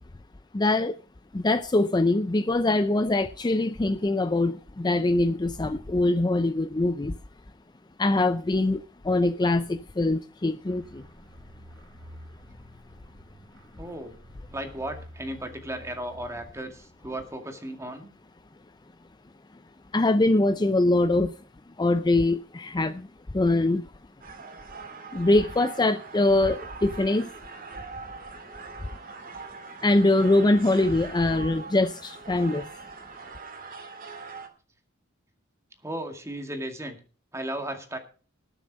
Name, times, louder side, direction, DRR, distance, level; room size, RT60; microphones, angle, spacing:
voice 1, 0.5-1.0 1.3-7.1 8.0-11.0 19.9-21.3 21.8-23.1 23.3-23.8 25.1-27.3 29.8-32.7, left 2 dB, 20° left, 0.5 m, -23 dB
sound 1, 10.6-17.1, equal, 75° right, 2.6 m, -50 dB
voice 2, 13.8-14.2 14.5-18.1 35.8-37.0 37.3-38.0, right 1 dB, 15° right, 2.1 m, -35 dB
sound 2, 24.2-34.5, right 4 dB, 45° right, 2.2 m, -42 dB
19.5 x 7.0 x 5.3 m
head